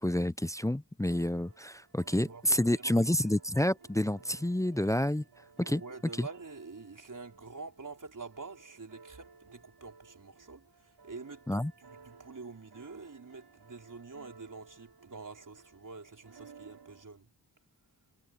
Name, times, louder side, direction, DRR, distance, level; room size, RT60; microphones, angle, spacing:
voice 1, 0.0-5.2 5.6-5.8 6.2-6.3 11.5-11.7, left 1 dB, 10° left, 0.5 m, -29 dB
sound 1, 1.1-17.0, right 5 dB, 65° right, 6.2 m, -58 dB
voice 2, 2.0-3.1 5.6-17.3, right 4 dB, 45° right, 4.8 m, -47 dB
wide cardioid pair, 75°, 42 cm